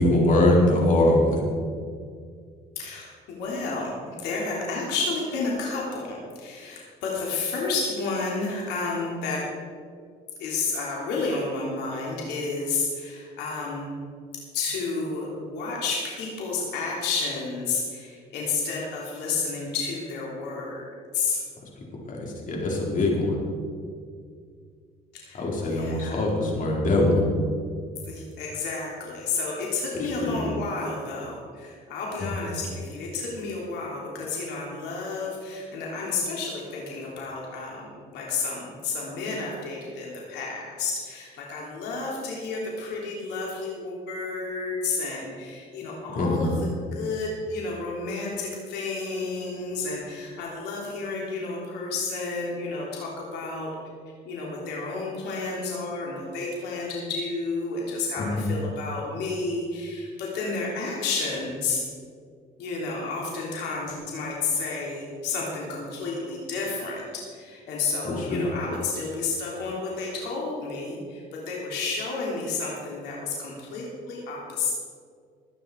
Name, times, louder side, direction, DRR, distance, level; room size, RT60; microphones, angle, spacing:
voice 1, 0.0-1.4 22.1-23.4 25.4-27.2 30.2-30.4 46.1-46.5 58.2-58.5 68.0-68.4, left 1 dB, 50° left, -2 dB, 4.4 m, -22 dB
voice 2, 2.7-9.4 10.4-13.9 14.5-21.4 25.1-26.2 28.0-46.5 46.9-53.7 54.2-61.8 62.6-67.0 67.3-74.7, left 3 dB, 85° left, -3 dB, 3.3 m, -31 dB
21.5 x 9.3 x 4.7 m, 2.1 s
cardioid pair, 110°, 17 cm